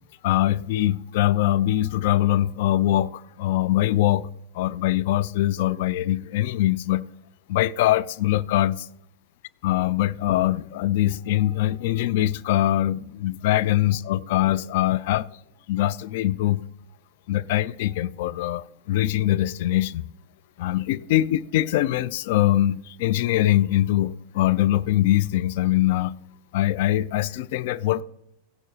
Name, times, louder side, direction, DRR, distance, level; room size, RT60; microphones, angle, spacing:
voice 1, 0.2-4.3 4.5-7.0 7.5-8.9 9.6-15.3 15.7-16.6 17.3-20.0 20.6-26.2 26.5-28.0, left 13 dB, 50° left, 0.3 m, -23 dB
16.5 x 12.0 x 2.7 m
figure-of-eight pair, 90°, 0 cm